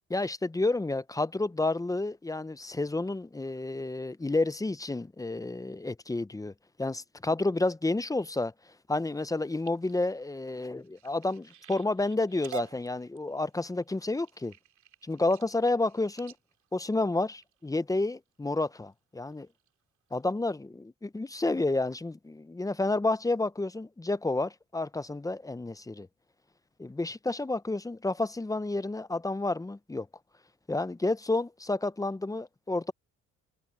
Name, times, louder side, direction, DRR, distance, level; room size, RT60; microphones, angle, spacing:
voice 1, 0.1-6.5 6.8-8.5 8.9-14.5 15.0-16.3 16.7-19.5 20.1-26.1 26.8-30.1 30.7-32.9, left 2 dB, 10° left, 0.6 m, -30 dB
sound 1, 9.3-17.9 18.5-18.9 19.3-19.7 20.1-20.2 20.5-20.6, right 15 dB, 75° right, 2.4 m, -49 dB
cardioid pair, 90°, 30 cm